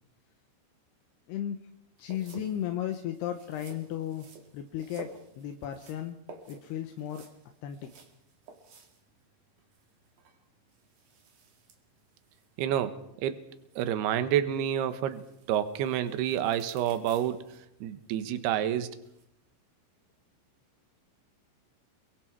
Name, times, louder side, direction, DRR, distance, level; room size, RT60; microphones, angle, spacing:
voice 1, 1.3-1.6 2.0-4.3 4.5-5.1 5.4-6.2 6.5-7.2 7.6-7.9, left 11 dB, 75° left, 6 dB, 2.5 m, -35 dB
sound 1, 2.0-19.2, right 4 dB, 45° right, 3.1 m, -54 dB
voice 2, 12.6-13.4 13.8-15.2 15.5-17.4 17.8-18.9, right 10 dB, 70° right, 10 dB, 2.7 m, -28 dB
29.0 x 23.0 x 4.7 m, 0.77 s
omnidirectional pair, 6.0 m